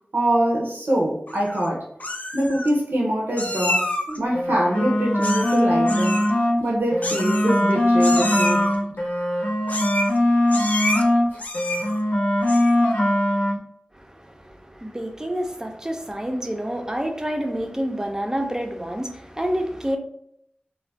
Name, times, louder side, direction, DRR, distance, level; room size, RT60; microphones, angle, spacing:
voice 1, 0.1-1.9 2.3-6.2 6.6-8.7, right 1 dB, 80° right, 0.6 m, -24 dB
Meow, 1.3-1.7 2.0-2.7 3.4-4.2 5.2-5.6 5.9-6.3 7.0-7.7 8.0-8.7 9.7-10.2 10.5-11.0 11.4-12.0 12.4-12.8, left 1 dB, 45° left, 0.4 m, -28 dB
sound 1, 4.3-6.6 6.9-11.3 11.5-13.6, left 1 dB, 80° left, 0.7 m, -21 dB
voice 2, 13.9-20.0, equal, 20° right, 0.4 m, -28 dB
2.4 x 2.1 x 3.3 m
wide cardioid pair, 60°, 3 cm